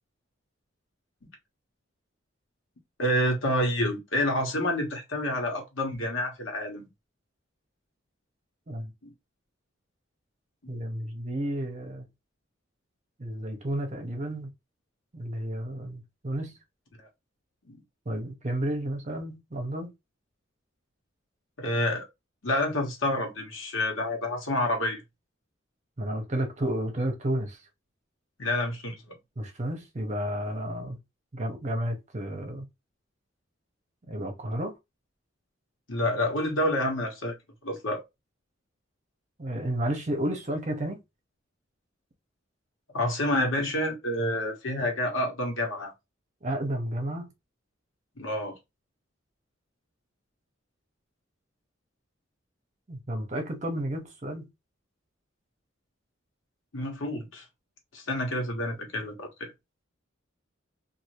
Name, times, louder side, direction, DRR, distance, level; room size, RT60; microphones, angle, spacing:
voice 1, 3.0-6.9 9.0-9.1 10.6-10.7 17.0-17.1 17.6-17.8 21.6-22.0 22.4-25.0 28.4-29.1 35.9-37.3 37.6-38.0 42.9-45.9 48.2-48.6 56.7-57.4 57.9-59.5, left 1 dB, 75° left, 1.2 m, -28 dB
voice 2, 10.7-12.1 13.2-14.5 15.1-16.5 18.1-19.9 26.0-27.6 29.4-31.0 31.3-32.7 34.1-34.7 39.4-41.0 46.4-47.3 52.9-54.5, right 1 dB, 35° right, 0.8 m, -32 dB
2.7 x 2.5 x 3.0 m
head